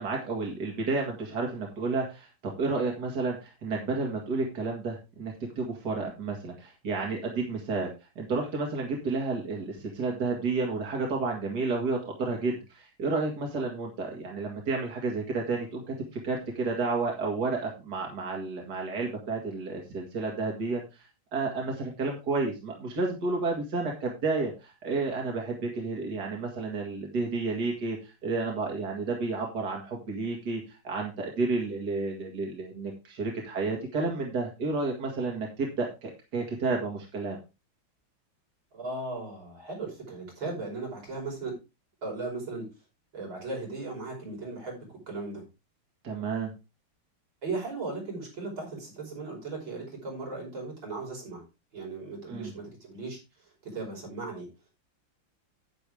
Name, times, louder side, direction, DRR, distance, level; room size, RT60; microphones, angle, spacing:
voice 1, 0.0-20.8 21.3-37.4 46.0-46.5 52.3-52.5, right 3 dB, 55° right, 0 dB, 2.5 m, -31 dB
voice 2, 38.7-41.6 42.0-42.7 43.1-45.4 47.4-51.4 51.7-54.5, right 3 dB, 85° right, -2 dB, 6.1 m, -37 dB
10.0 x 9.4 x 3.4 m, 0.27 s
omnidirectional pair, 2.1 m